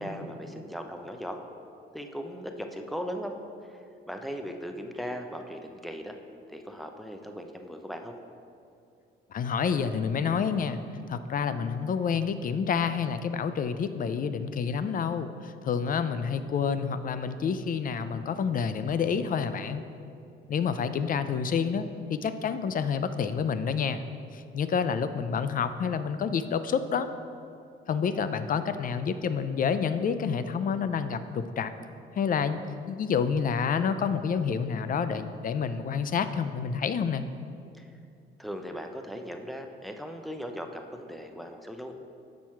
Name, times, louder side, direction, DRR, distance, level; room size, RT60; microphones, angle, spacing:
voice 1, 0.0-1.4 1.9-3.3 3.7-3.8 4.1-6.1 6.5-8.1 37.8-37.9 38.4-41.9, equal, ahead, 4 dB, 0.6 m, -38 dB
voice 2, 9.3-10.8 11.1-19.8 20.5-24.0 24.3-27.1 27.9-31.7 32.1-32.6 32.9-37.3, left 6 dB, 45° left, 11 dB, 0.4 m, -28 dB
7.4 x 6.0 x 4.4 m, 2.5 s
cardioid pair, 90°, 20 cm